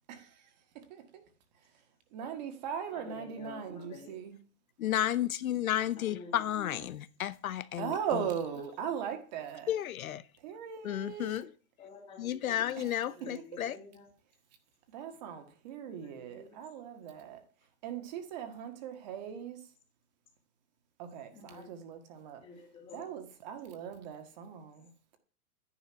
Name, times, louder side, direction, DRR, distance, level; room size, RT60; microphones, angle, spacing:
voice 1, 0.1-1.1 1.6-1.8 2.1-4.4 7.8-9.7 10.4-11.5 12.8-13.0 13.4-13.5 14.9-17.4 17.8-19.6 21.0-22.4 22.9-25.2, right 8 dB, 30° right, 1.7 m, -39 dB
voice 2, 2.9-4.2 5.9-6.9 11.8-12.8 13.0-14.1 15.9-16.6 21.3-21.7 22.4-23.1, left 4 dB, 10° left, 2.2 m, -50 dB
voice 3, 4.8-7.9 9.7-10.2 10.8-11.5 12.2-13.7, left 11 dB, 65° left, 0.9 m, -32 dB
12.0 x 10.0 x 5.7 m
supercardioid pair, 180°, 45 cm